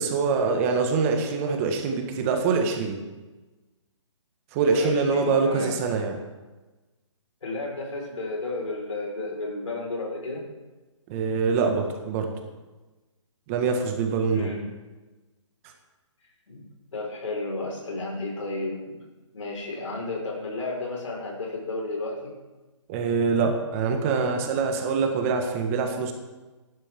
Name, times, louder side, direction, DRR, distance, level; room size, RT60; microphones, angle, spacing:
voice 1, 0.0-3.0 4.5-6.2 11.1-12.3 13.5-14.5 22.9-26.1, right 5 dB, 25° right, 4 dB, 1.6 m, -24 dB
voice 2, 4.7-5.8 7.4-10.4 14.3-14.7 16.5-16.6 16.9-19.0 19.3-22.3, left 2 dB, 75° left, -1 dB, 4.7 m, -32 dB
15.5 x 11.5 x 3.7 m, 1.2 s
hypercardioid pair, 150°, 16 cm